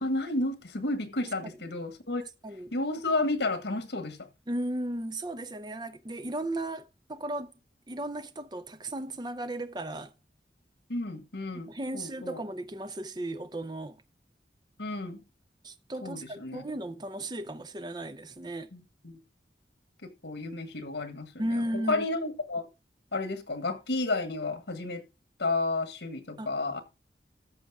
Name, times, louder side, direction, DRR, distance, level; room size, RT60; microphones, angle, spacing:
voice 1, 0.0-2.2 2.7-4.3 10.9-12.4 14.8-15.2 16.0-16.6 18.7-19.2 20.0-22.7 23.1-25.0 25.4-26.8, left 2 dB, 80° left, 1.6 m, -32 dB
voice 2, 4.5-7.5 7.9-10.1 11.5-14.0 15.6-18.7 21.4-22.0 26.4-26.5, right 1 dB, 25° right, 0.6 m, -35 dB
13.5 x 5.7 x 3.6 m
head